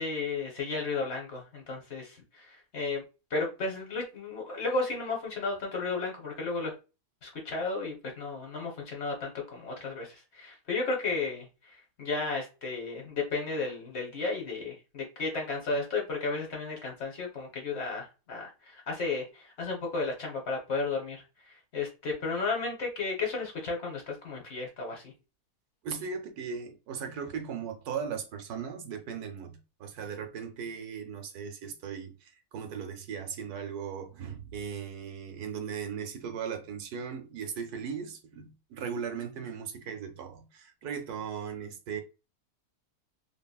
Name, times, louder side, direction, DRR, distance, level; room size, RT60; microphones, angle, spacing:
voice 1, 0.0-3.0 3.3-6.7 7.2-25.1, left 3 dB, 55° left, 0.9 m, -33 dB
voice 2, 25.8-42.0, right 7 dB, 85° right, 1.2 m, -38 dB
2.8 x 2.6 x 2.3 m
omnidirectional pair, 1.6 m